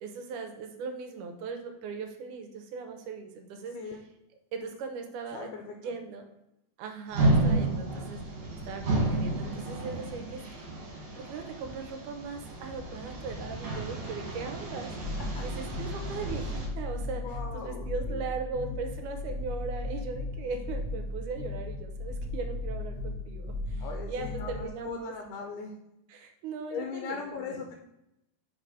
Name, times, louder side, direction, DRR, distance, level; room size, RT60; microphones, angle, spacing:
voice 1, 0.0-3.8 4.5-5.5 5.8-6.2 6.8-25.1 26.1-27.6, right 5 dB, 80° right, 5 dB, 2.3 m, -39 dB
voice 2, 5.3-5.9 15.3-15.4 17.2-18.2 18.5-18.7 23.8-25.8 26.7-27.7, left 5 dB, 85° left, 3 dB, 2.1 m, -39 dB
sound 1, 7.1-16.7, right 2 dB, 60° right, 2.7 m, -31 dB
sound 2, 15.0-24.7, left 2 dB, 55° left, 1.0 m, -36 dB
5.2 x 4.8 x 3.9 m, 0.87 s
omnidirectional pair, 3.6 m